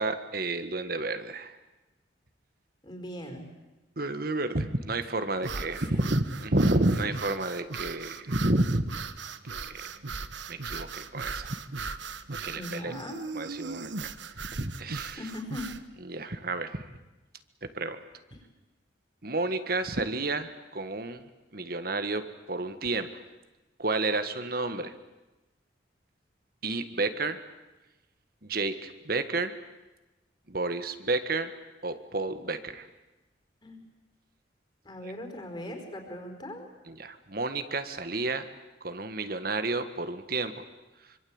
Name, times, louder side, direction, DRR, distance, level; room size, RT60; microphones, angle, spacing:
voice 1, 0.0-1.6 4.0-9.0 9.5-9.8 10.5-11.6 12.4-12.9 13.3-14.1 14.6-15.2 16.0-16.9 17.6-18.0 19.2-21.2 21.5-23.2 23.8-24.9 26.6-27.4 28.4-29.5 30.5-31.5 31.8-32.9 35.0-35.1 36.9-38.5 38.8-40.6, right 2 dB, 50° right, 10 dB, 1.6 m, -30 dB
voice 2, 2.8-3.5 5.4-5.7 5.9-6.1 12.5-13.2 15.2-15.7 33.6-33.8 34.8-36.7, left 1 dB, 25° left, 5 dB, 4.8 m, -40 dB
sound 1, 5.4-15.8, right 4 dB, 75° right, 1.3 m, -38 dB
26.0 x 25.0 x 8.8 m, 1.1 s
head